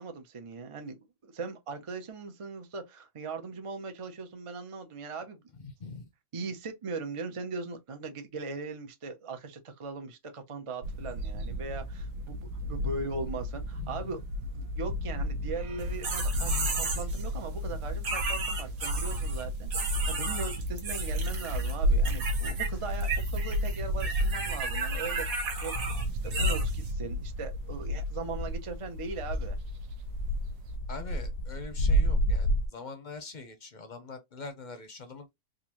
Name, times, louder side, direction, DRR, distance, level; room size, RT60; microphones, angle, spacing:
voice 1, 0.0-5.4 6.3-14.2 14.5-25.8 26.2-29.6, right 4 dB, 45° right, 0.4 m, -39 dB
voice 2, 5.6-6.1 13.7-14.2 16.3-16.8 30.9-35.3, left 4 dB, 45° left, 0.7 m, -43 dB
sound 1, 10.8-30.8, left 1 dB, 75° right, 1.0 m, -33 dB
sound 2, 15.8-17.3 18.0-19.4 19.7-21.7 22.0-22.7 22.9-26.9, right 4 dB, 90° right, 1.5 m, -34 dB
sound 3, 22.3-23.0 23.4-32.7, right 1 dB, 70° left, 0.9 m, -32 dB
3.8 x 2.6 x 2.9 m
omnidirectional pair, 1.5 m